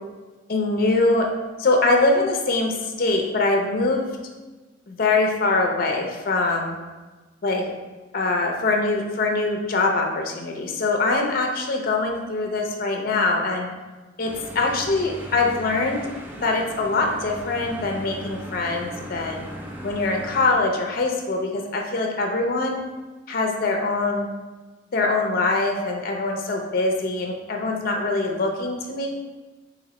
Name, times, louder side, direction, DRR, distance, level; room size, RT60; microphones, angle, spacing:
voice 1, 0.5-1.3 1.6-4.1 4.9-6.7 7.4-7.6 8.1-13.7 14.2-14.3 14.5-16.0 16.4-19.5 19.8-22.8 23.3-24.3 24.9-29.1, left 3 dB, 50° left, 2 dB, 0.5 m, -23 dB
sound 1, 14.2-20.5, equal, 10° right, 0.3 m, -38 dB
3.9 x 2.8 x 4.1 m, 1.2 s
head